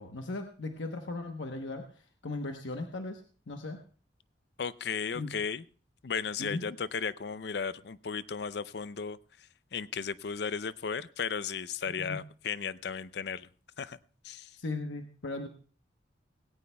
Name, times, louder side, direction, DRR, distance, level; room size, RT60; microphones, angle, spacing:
voice 1, 0.0-3.8 5.1-5.3 6.4-6.6 12.0-12.2 14.6-15.5, left 2 dB, 90° left, 4 dB, 1.0 m, -38 dB
voice 2, 4.6-5.6 6.0-13.5 13.8-14.0 14.2-14.5, left 6 dB, 65° left, 16 dB, 0.5 m, -35 dB
18.5 x 17.0 x 2.3 m, 0.41 s
head